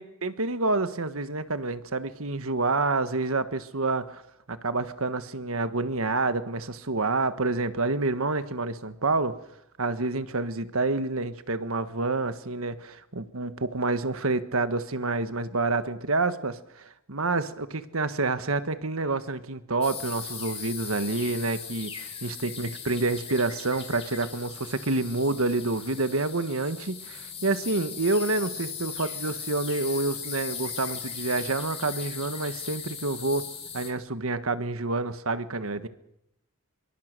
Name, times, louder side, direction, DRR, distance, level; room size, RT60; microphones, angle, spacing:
voice 1, 0.0-4.2 4.5-9.3 9.8-33.5 33.7-35.9, right 3 dB, 75° right, 11 dB, 1.5 m, -28 dB
sound 1, 19.8-33.9, left 7 dB, 30° left, 4.5 m, -38 dB
26.0 x 23.5 x 6.8 m, 0.79 s
head